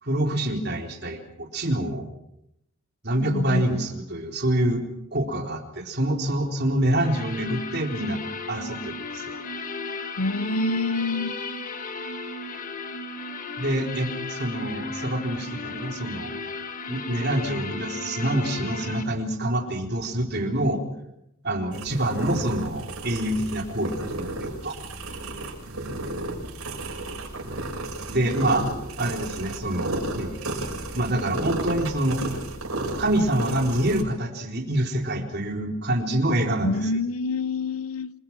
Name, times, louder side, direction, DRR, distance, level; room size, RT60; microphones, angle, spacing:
voice 1, 0.0-2.0 3.0-4.8 5.1-8.2 8.5-9.4 13.6-16.3 16.9-20.8 21.4-24.8 28.1-28.7 29.0-30.4 30.9-32.2 33.0-36.9, right 1 dB, 50° right, 4.0 m, -26 dB
voice 2, 3.2-3.7 10.2-11.3 36.6-38.1, left 2 dB, 80° left, 0.9 m, -26 dB
sound 1, 7.0-19.0, left 3 dB, 40° left, 1.9 m, -35 dB
sound 2, 21.7-34.0, right 2 dB, 90° right, 6.7 m, -33 dB
27.5 x 22.0 x 6.1 m
head